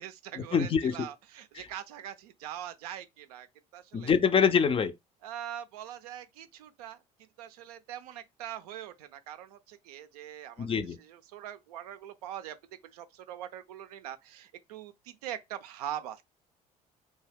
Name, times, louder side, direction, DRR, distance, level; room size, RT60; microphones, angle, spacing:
voice 1, 0.0-3.5 3.7-4.1 5.2-7.0 7.4-16.2, right 11 dB, 80° right, 0.4 m, -42 dB
voice 2, 0.5-1.1 3.9-4.9 10.6-11.0, left 6 dB, 30° left, 0.4 m, -25 dB
2.7 x 2.2 x 3.4 m
hypercardioid pair, 60°, 20 cm